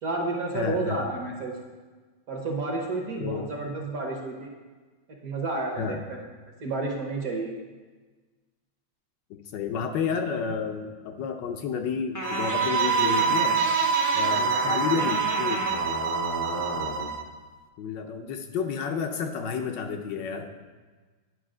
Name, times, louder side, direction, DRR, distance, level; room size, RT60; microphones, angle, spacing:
voice 1, 0.0-1.5 2.3-4.5 5.2-6.0 6.6-7.5, right 2 dB, 55° right, 1 dB, 1.3 m, -30 dB
voice 2, 0.5-1.0 3.2-3.5 5.8-6.0 9.3-13.6 14.1-15.7 16.5-17.0 17.8-20.5, left 6 dB, 75° left, 5 dB, 1.2 m, -31 dB
sound 1, 12.1-17.1, left 1 dB, 25° left, 0.3 m, -32 dB
sound 2, 12.2-17.2, right 7 dB, 85° right, 1.3 m, -26 dB
9.8 x 5.6 x 3.7 m, 1.4 s
omnidirectional pair, 2.1 m